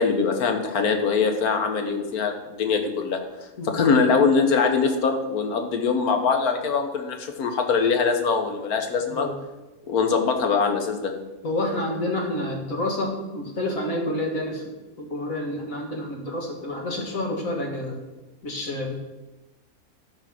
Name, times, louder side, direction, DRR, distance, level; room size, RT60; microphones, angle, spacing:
voice 1, 0.0-3.2 3.6-9.3 9.9-11.1, left 5 dB, 90° left, 5 dB, 1.6 m, -22 dB
voice 2, 3.6-3.9 9.1-9.4 11.4-18.0 18.4-18.9, left 1 dB, 65° left, 0 dB, 2.2 m, -29 dB
12.5 x 4.8 x 6.1 m, 1.1 s
omnidirectional pair, 1.5 m